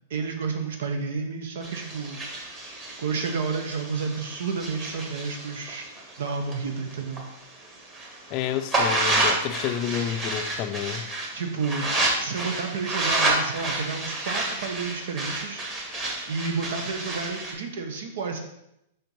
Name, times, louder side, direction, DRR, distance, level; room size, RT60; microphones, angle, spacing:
voice 1, 0.1-2.2 2.6-5.9 6.2-7.2 11.3-11.9 12.2-15.6 16.3-18.4, right 5 dB, 75° right, 0.9 m, -31 dB
sound 1, 1.6-7.2 7.6-17.5, right 2 dB, 20° right, 1.4 m, -29 dB
voice 2, 8.3-11.1, left 10 dB, 35° left, 0.4 m, -29 dB
5.2 x 4.5 x 5.3 m
supercardioid pair, 155°, 0 cm